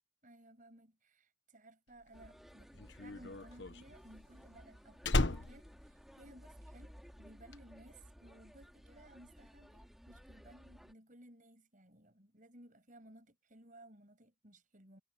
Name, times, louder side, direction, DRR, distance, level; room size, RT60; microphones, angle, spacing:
voice 1, 0.2-15.0, right 1 dB, 45° right, 6.9 m, -59 dB
Slam, 2.1-6.8 7.1-7.5, left 2 dB, 75° left, 1.3 m, -36 dB
sound 1, 2.1-10.9, equal, ahead, 2.5 m, -57 dB
head